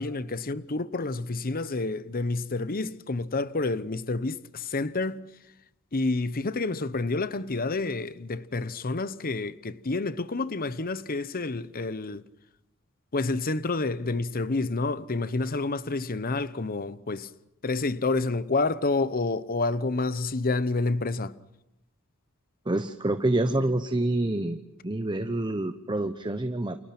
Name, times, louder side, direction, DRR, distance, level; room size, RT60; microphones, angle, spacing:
voice 1, 0.0-5.2 5.9-12.2 13.1-17.3 17.6-21.3, left 3 dB, 45° left, 0.9 m, -29 dB
voice 2, 22.7-26.8, right 1 dB, 20° right, 1.0 m, -27 dB
30.0 x 28.0 x 6.1 m
head